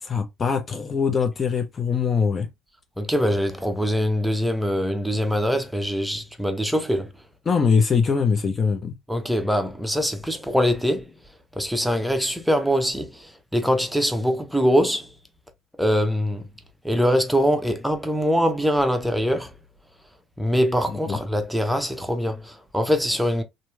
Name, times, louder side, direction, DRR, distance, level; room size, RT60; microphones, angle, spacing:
voice 1, 0.0-2.5 7.5-9.0 21.1-21.2, left 5 dB, 40° left, 0.6 m, -22 dB
voice 2, 3.0-7.1 9.1-11.1 11.6-15.1 15.8-16.4 16.8-19.5 20.4-23.4, equal, ahead, 0.7 m, -23 dB
2.9 x 2.6 x 2.3 m
supercardioid pair, 65°, 0 cm